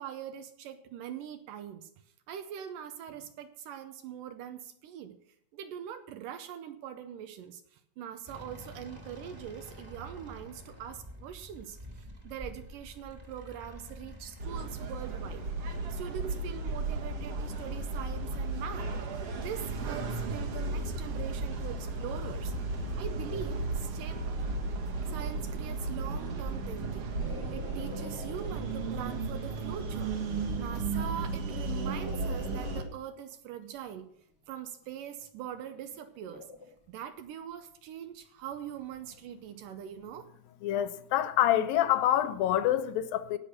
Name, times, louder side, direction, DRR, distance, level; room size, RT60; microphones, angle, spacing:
voice 1, 0.0-1.9 2.3-5.2 5.5-22.5 23.0-24.2 25.0-30.2 30.6-34.1 34.5-36.5 36.9-40.3, right 9 dB, 75° right, 2.2 m, -42 dB
sound 1, 8.3-23.0, equal, 15° right, 1.4 m, -48 dB
sound 2, 14.4-32.8, right 3 dB, 55° right, 2.0 m, -34 dB
sound 3, 22.5-22.6 22.8-30.1 30.5-34.0 34.6-39.1, left 4 dB, 55° left, 1.1 m, -50 dB
voice 2, 40.6-43.4, left 12 dB, 80° left, 2.5 m, -26 dB
17.0 x 6.0 x 6.5 m
omnidirectional pair, 4.3 m